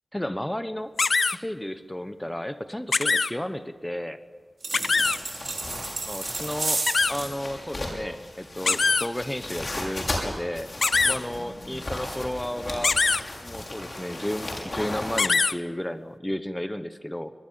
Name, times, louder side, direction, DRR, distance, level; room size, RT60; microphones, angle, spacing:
voice 1, 0.1-0.9 1.3-4.2 6.1-10.7 11.0-13.0 13.4-17.3, left 1 dB, 10° left, 10 dB, 1.2 m, -33 dB
sound 1, 1.0-1.4 2.9-3.3 4.7-5.2 6.9-7.1 8.7-9.1 10.8-11.2 12.8-13.2 15.2-15.5, left 4 dB, 75° left, 0.7 m, -22 dB
sound 2, 4.6-7.3, right 2 dB, 55° right, 5.6 m, -31 dB
sound 3, 5.0-15.3, left 1 dB, 50° left, 6.0 m, -36 dB
24.0 x 20.5 x 7.7 m, 1.4 s
wide cardioid pair, 85°, 0 cm